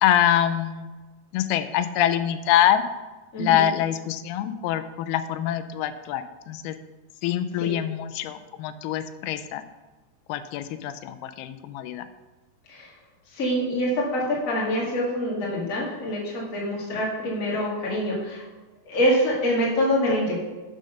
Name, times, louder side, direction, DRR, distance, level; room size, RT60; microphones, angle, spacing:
voice 1, 0.0-0.9 1.3-2.8 3.4-6.8 7.2-9.6 10.3-12.1, left 11 dB, 85° left, 10 dB, 2.5 m, -24 dB
voice 2, 3.3-3.7 7.6-7.7 12.7-12.9 13.3-18.4 18.8-20.4, equal, 30° left, -4 dB, 1.5 m, -25 dB
6.5 x 6.3 x 5.6 m, 1.2 s
omnidirectional pair, 4.4 m